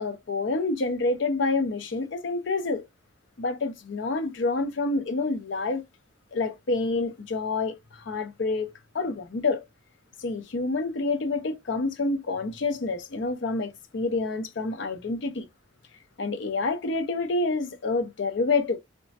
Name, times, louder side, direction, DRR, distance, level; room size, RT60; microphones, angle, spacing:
voice 1, 0.0-2.8 3.4-5.8 6.3-9.6 10.2-15.5 16.2-18.8, left 3 dB, 70° left, 0.5 m, -28 dB
3.0 x 2.2 x 2.7 m
head